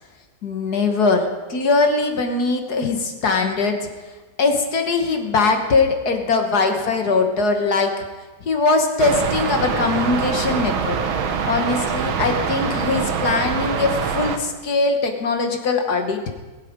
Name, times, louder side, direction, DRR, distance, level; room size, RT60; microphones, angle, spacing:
voice 1, 0.4-3.9 4.4-7.9 8.4-11.0 11.5-16.2, left 3 dB, 55° left, 5 dB, 1.6 m, -21 dB
sound 1, 9.0-14.4, right 6 dB, 80° right, 1.8 m, -24 dB
21.0 x 8.3 x 5.1 m, 1.2 s
omnidirectional pair, 2.2 m